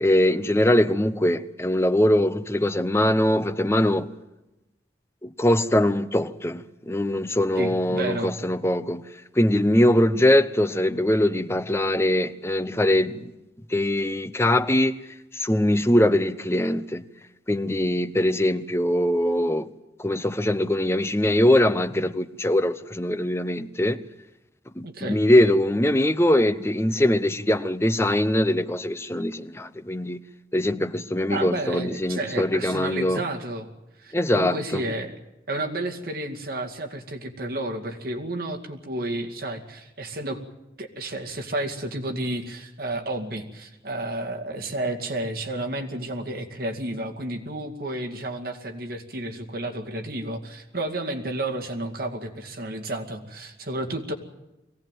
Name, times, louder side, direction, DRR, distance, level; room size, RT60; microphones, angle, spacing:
voice 1, 0.0-4.1 5.2-9.0 9.4-13.3 13.7-15.0 15.3-17.0 17.5-19.7 20.0-24.0 24.8-30.2 30.5-33.2 34.1-34.8, left 1 dB, 15° left, 0.7 m, -22 dB
voice 2, 7.6-8.4 24.8-25.2 31.3-33.7 34.0-35.2 35.5-40.4 40.8-54.1, right 1 dB, 55° right, 2.3 m, -31 dB
22.5 x 17.0 x 9.2 m
head